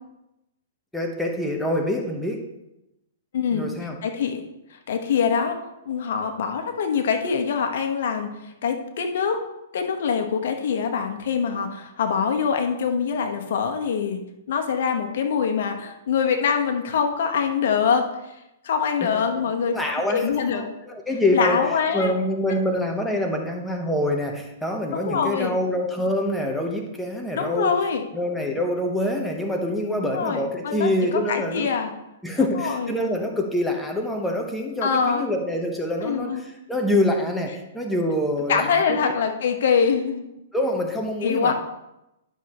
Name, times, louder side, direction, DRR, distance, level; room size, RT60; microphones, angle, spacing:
voice 1, 0.9-2.4 3.5-4.0 19.0-19.2 19.7-21.6 21.9-27.7 28.1-31.7 32.2-39.0 40.5-41.5, left 1 dB, 5° left, 1 dB, 1.1 m, -25 dB
voice 2, 3.3-3.6 4.0-4.4 4.7-5.6 5.8-9.4 9.7-14.2 14.5-18.3 18.6-20.6 21.3-22.1 22.5-22.6 24.9-25.5 27.3-28.1 30.0-31.9 32.4-32.9 34.8-35.2 36.0-36.4 38.5-40.2 41.2-41.5, left 6 dB, 65° left, 5 dB, 1.3 m, -24 dB
12.0 x 6.3 x 3.1 m, 0.91 s
hypercardioid pair, 130°, 0 cm